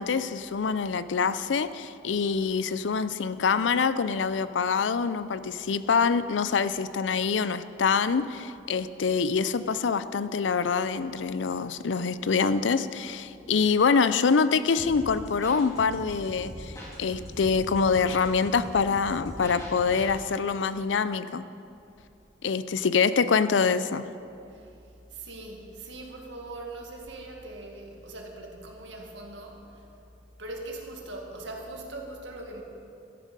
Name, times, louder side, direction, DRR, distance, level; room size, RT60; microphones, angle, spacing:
voice 1, 0.0-16.7 17.0-21.4 22.4-24.1, left 5 dB, 90° left, 13 dB, 0.5 m, -25 dB
sound 1, 14.8-20.1, equal, 20° left, 3.5 m, -41 dB
voice 2, 25.1-29.9 30.4-32.6, right 2 dB, 80° right, 0 dB, 2.0 m, -41 dB
13.0 x 11.5 x 5.3 m, 2.6 s
head